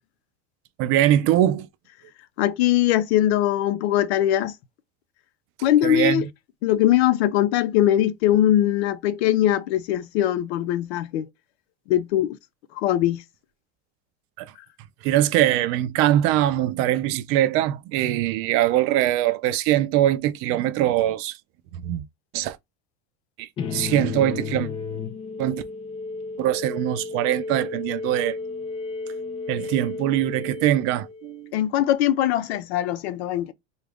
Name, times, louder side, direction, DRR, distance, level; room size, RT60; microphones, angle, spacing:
voice 1, 0.8-1.7 5.8-6.2 14.4-14.5 15.0-21.4 21.7-22.0 22.3-22.6 23.4-24.7 25.4-25.6 26.4-28.4 29.5-31.5, right 13 dB, 45° right, 0.5 m, -22 dB
voice 2, 2.4-4.5 5.6-6.3 6.6-11.3 11.9-12.4 12.8-13.2 31.5-33.5, left 12 dB, 75° left, 0.7 m, -21 dB
sound 1, 23.6-31.5, left 4 dB, 20° left, 0.3 m, -33 dB
3.9 x 2.4 x 3.4 m
supercardioid pair, 150°, 32 cm